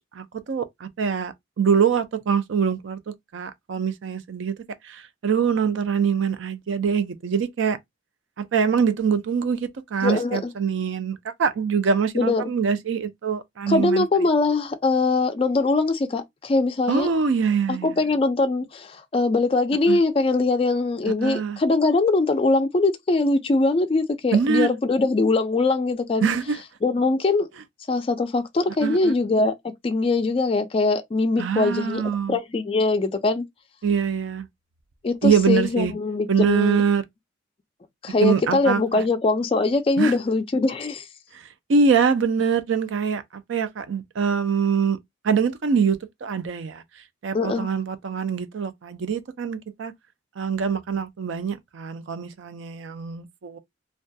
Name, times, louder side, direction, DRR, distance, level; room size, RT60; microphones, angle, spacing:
voice 1, 0.1-4.5 4.8-7.8 8.4-14.1 16.9-18.1 19.9-20.0 21.2-21.6 24.3-24.7 26.2-26.6 28.8-29.1 31.4-32.4 33.8-34.5 35.2-35.9 36.3-37.0 38.2-39.0 40.0-40.2 41.3-41.4 41.7-45.0 45.2-46.8 47.2-49.9 50.4-53.6, right 6 dB, 70° right, 0.4 m, -24 dB
voice 2, 10.0-10.5 12.1-12.5 13.7-17.1 17.7-26.3 26.8-27.5 27.9-29.6 29.8-32.0 32.3-33.4 35.0-36.8 38.0-41.1 47.3-47.7, left 3 dB, 30° left, 0.3 m, -22 dB
2.3 x 2.1 x 2.6 m
head